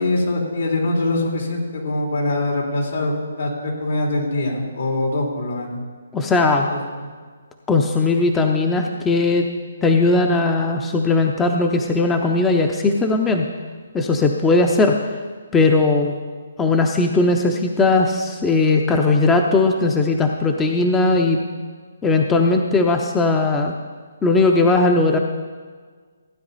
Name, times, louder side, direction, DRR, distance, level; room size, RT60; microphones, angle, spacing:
voice 1, 0.0-5.8 6.7-7.1, left 2 dB, 75° left, -1 dB, 3.5 m, -23 dB
voice 2, 6.1-6.7 7.7-9.4 9.8-13.4 13.9-15.0 15.5-16.2 16.6-21.4 22.0-23.7 24.2-25.2, left 3 dB, 10° left, 3 dB, 0.6 m, -18 dB
15.5 x 9.3 x 4.1 m, 1.5 s
hypercardioid pair, 155°, 0 cm